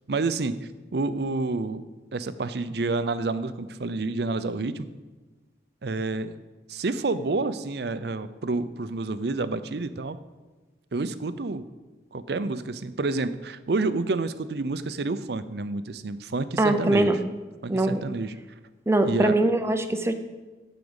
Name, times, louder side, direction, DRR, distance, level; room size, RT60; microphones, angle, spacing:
voice 1, 0.1-1.8 2.1-4.9 5.8-6.3 6.7-10.2 10.9-11.6 12.1-17.2 17.6-18.3 19.0-19.4, right 3 dB, 65° right, 13 dB, 0.6 m, -29 dB
voice 2, 16.6-17.2 17.7-18.0 18.9-20.1, right 2 dB, 15° right, 8 dB, 0.6 m, -22 dB
12.0 x 5.0 x 8.0 m, 1.2 s
head